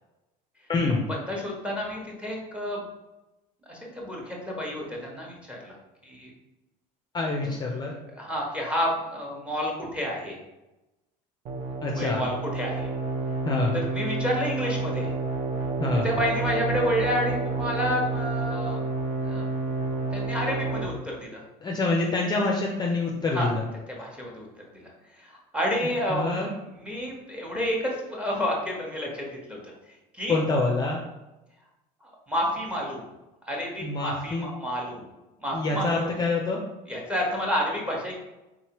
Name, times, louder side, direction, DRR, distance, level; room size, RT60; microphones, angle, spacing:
voice 1, 0.7-1.0 7.1-7.9 11.8-12.2 13.4-13.8 15.8-16.1 21.6-23.6 26.1-26.5 30.3-31.0 33.8-34.5 35.5-36.6, left 3 dB, 25° left, 0 dB, 0.5 m, -26 dB
voice 2, 1.3-2.8 3.7-5.8 6.0-6.3 8.2-10.4 12.0-12.9 13.7-15.1 16.0-18.8 19.2-19.5 20.1-21.4 23.3-23.5 24.0-24.5 24.7-24.8 25.2-26.5 26.8-29.7 30.1-30.4 32.0-33.0 33.5-35.0 35.4-36.1 36.9-38.1, equal, 5° right, -1 dB, 1.1 m, -30 dB
sound 1, 11.5-20.9, right 3 dB, 40° right, 0.7 m, -29 dB
3.8 x 3.1 x 2.9 m, 1.0 s
supercardioid pair, 105°, 17 cm